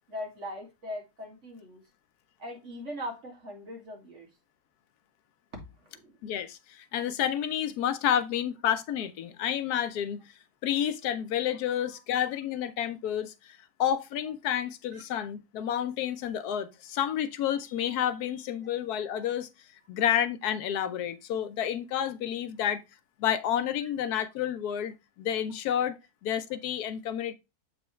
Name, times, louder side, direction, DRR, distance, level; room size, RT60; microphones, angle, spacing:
voice 1, 0.1-1.8 2.4-4.3 5.7-6.2 14.9-15.0 23.8-23.9, left 1 dB, 50° right, 2.4 m, -40 dB
voice 2, 6.2-10.2 10.6-19.5 19.9-22.8 23.2-27.3, left 10 dB, 90° left, 1.2 m, -30 dB
7.7 x 4.6 x 3.1 m
omnidirectional pair, 1.6 m